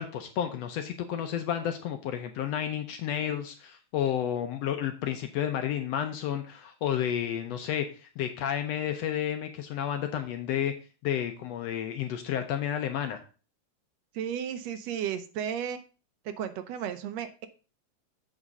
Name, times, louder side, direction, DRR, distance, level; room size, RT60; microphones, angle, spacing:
voice 1, 0.0-10.7 11.0-13.2, left 10 dB, 75° left, 6 dB, 1.7 m, -31 dB
voice 2, 14.2-15.8 16.3-17.5, right 9 dB, 75° right, 9 dB, 1.8 m, -34 dB
7.4 x 5.0 x 5.3 m, 0.36 s
omnidirectional pair, 3.3 m